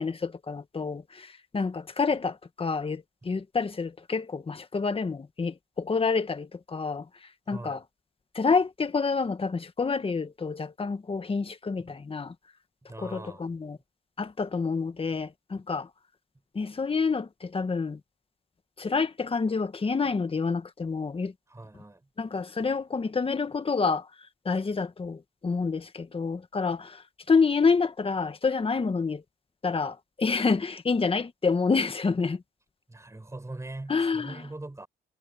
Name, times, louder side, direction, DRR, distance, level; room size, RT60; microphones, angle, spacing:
voice 1, 0.0-7.1 7.5-7.8 8.4-12.3 13.0-13.8 14.2-15.9 16.6-18.0 18.8-21.3 22.2-24.0 24.5-27.0 27.3-29.2 29.6-32.4 33.9-34.4, left 4 dB, 30° left, 1.7 m, -28 dB
voice 2, 7.5-7.8 11.8-11.9 12.9-13.5 21.5-22.1 32.9-34.9, right 2 dB, 15° right, 5.4 m, -41 dB
cardioid pair, 90°, 20 cm